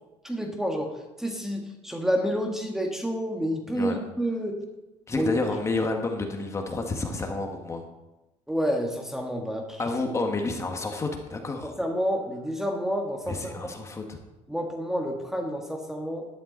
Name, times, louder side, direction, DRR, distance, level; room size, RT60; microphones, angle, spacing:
voice 1, 0.2-0.9 1.2-4.6 5.2-5.3 8.5-9.8 11.6-13.5 14.5-16.3, equal, 5° right, 2 dB, 1.6 m, -29 dB
voice 2, 5.1-7.8 9.8-11.7 13.3-14.2, left 3 dB, 25° left, 3 dB, 1.7 m, -30 dB
12.0 x 11.5 x 4.0 m, 1.0 s
cardioid pair, 115°, 13 cm